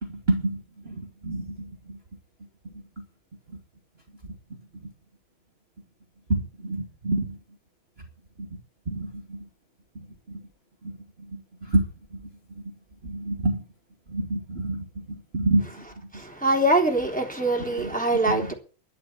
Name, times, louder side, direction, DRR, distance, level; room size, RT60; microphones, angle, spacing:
voice 1, 0.0-2.0 3.0-3.1 6.3-7.4 8.4-8.5 8.9-9.5 10.3-10.4 10.8-11.0 11.3-11.4 11.7-12.3 13.0-13.6 14.1-15.6 17.8-17.9 18.3-18.5, right 2 dB, 30° right, 2.5 m, -28 dB
voice 2, 16.1-18.5, right 1 dB, 5° left, 3.3 m, -23 dB
11.5 x 11.5 x 8.5 m
omnidirectional pair, 2.4 m